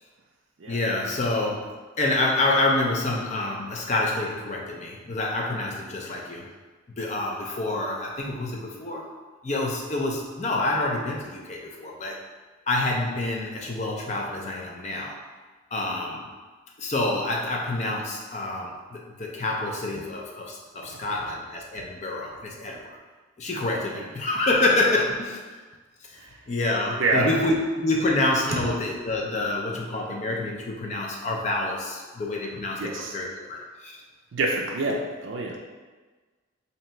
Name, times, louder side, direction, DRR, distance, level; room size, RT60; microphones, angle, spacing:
voice 1, 0.7-6.5 7.0-9.1 9.4-12.2 12.7-15.2 15.7-16.3 16.8-23.0 23.4-25.6 26.1-34.0, left 2 dB, 35° left, 0 dB, 0.5 m, -27 dB
voice 2, 27.0-27.3 32.8-33.1 34.3-35.6, right 2 dB, 70° right, 0 dB, 0.4 m, -27 dB
3.1 x 2.8 x 4.3 m, 1.3 s
head